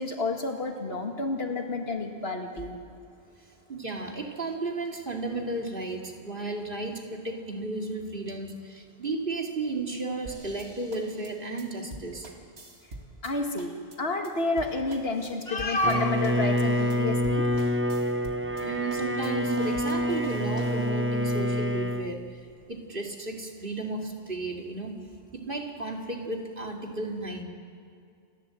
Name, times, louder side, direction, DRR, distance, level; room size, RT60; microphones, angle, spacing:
voice 1, 0.0-2.8 13.2-13.7 14.0-17.5, left 2 dB, 75° left, 4 dB, 2.1 m, -29 dB
voice 2, 3.7-12.3 18.6-22.3 22.7-24.9 25.3-27.4, right 2 dB, 55° right, 1 dB, 2.6 m, -34 dB
sound 1, 10.2-13.3 13.6-14.0 14.2-14.3 14.6-16.0 16.2-16.6 16.9-17.0 17.2-18.6 18.9-20.9, right 2 dB, 85° right, 2.4 m, -45 dB
Bowed string instrument, 15.8-22.1, equal, 15° right, 0.6 m, -27 dB
28.0 x 12.0 x 7.7 m, 2.4 s
omnidirectional pair, 1.1 m